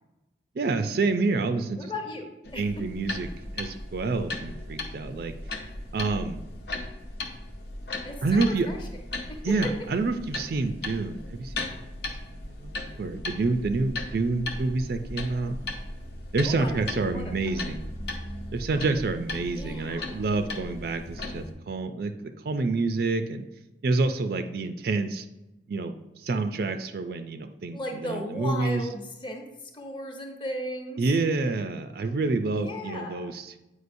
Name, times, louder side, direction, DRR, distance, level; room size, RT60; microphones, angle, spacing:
voice 1, 0.6-1.8 2.6-3.3 3.5-5.3 5.9-6.4 8.2-8.7 9.4-15.6 16.3-17.9 18.5-23.4 23.8-25.3 25.7-28.8 31.0-33.6, right 3 dB, 55° right, 8 dB, 0.4 m, -28 dB
voice 2, 1.8-2.8 8.0-8.9 9.3-9.7 16.4-17.6 19.5-20.2 27.7-31.0 32.5-33.3, left 1 dB, 25° left, 3 dB, 0.7 m, -36 dB
sound 1, 2.4-21.5, left 2 dB, 60° left, 0.7 m, -37 dB
8.1 x 4.9 x 2.6 m, 0.96 s
head